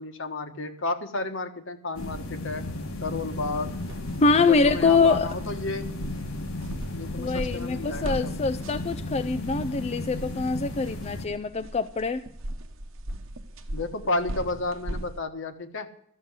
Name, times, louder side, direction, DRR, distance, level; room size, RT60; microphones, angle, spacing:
voice 1, 0.0-2.7 3.0-3.8 4.4-5.9 6.9-8.4 13.7-15.9, left 2 dB, 65° left, 8 dB, 1.4 m, -32 dB
sound 1, 1.9-11.3, left 2 dB, 80° left, 1.6 m, -35 dB
sound 2, 3.4-15.2, right 1 dB, 70° right, 1.0 m, -39 dB
voice 2, 4.2-5.3 7.2-12.3, left 4 dB, 30° left, 10 dB, 0.4 m, -24 dB
13.5 x 7.0 x 9.4 m, 0.67 s
head